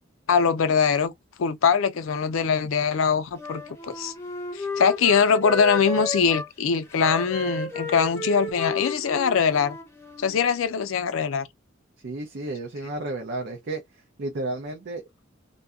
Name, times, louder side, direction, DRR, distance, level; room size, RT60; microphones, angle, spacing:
voice 1, 0.3-1.1 1.4-4.1 4.5-9.8 10.2-11.5, left 6 dB, 75° left, 0.4 m, -22 dB
Wind instrument woodwind instrument, 3.4-6.5 6.9-10.4, left 1 dB, 15° left, 0.7 m, -33 dB
voice 2, 12.0-15.2, right 2 dB, 55° right, 0.5 m, -33 dB
2.6 x 2.2 x 2.3 m
head